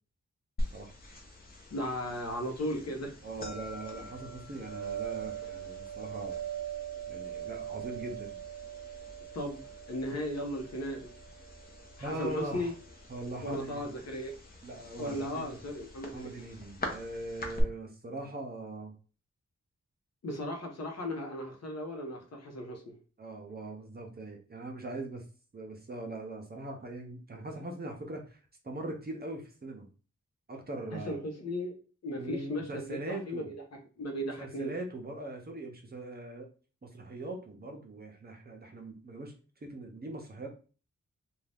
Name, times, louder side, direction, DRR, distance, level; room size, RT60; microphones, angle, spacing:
sound 1, 0.6-17.6, right 3 dB, 30° left, 0.8 m, -41 dB
voice 1, 1.7-3.1 9.3-9.6 9.9-11.1 12.0-12.7 13.4-14.3 15.0-16.3 20.2-23.0 30.9-34.7, equal, 60° left, 2 dB, 0.8 m, -36 dB
voice 2, 3.2-6.4 7.1-8.4 12.0-12.7 13.1-14.0 14.6-15.6 16.1-18.9 23.2-25.2 25.5-28.4 28.6-29.9 30.5-31.2 32.2-33.5 34.2-36.5 36.8-39.3 39.6-40.5, right 2 dB, 35° right, 2 dB, 0.7 m, -41 dB
2.6 x 2.3 x 3.4 m, 0.37 s
wide cardioid pair, 100°, 29 cm